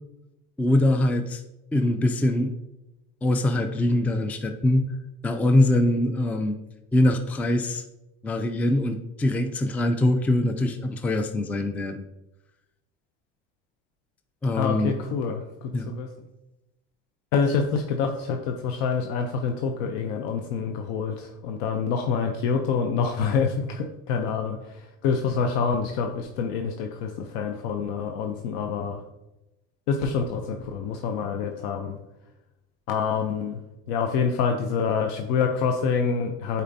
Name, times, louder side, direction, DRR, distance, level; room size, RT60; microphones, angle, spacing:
voice 1, 0.6-1.4 1.7-2.6 3.2-4.9 5.2-6.5 6.9-7.8 8.2-12.1 14.4-14.9 15.7-15.9, left 1 dB, 5° left, 7 dB, 0.3 m, -23 dB
voice 2, 14.5-16.1 17.3-29.0 29.9-32.0 32.9-33.6 33.9-36.6, left 5 dB, 90° left, 5 dB, 0.6 m, -26 dB
8.5 x 4.3 x 2.6 m, 0.96 s
cardioid pair, 115°, 30 cm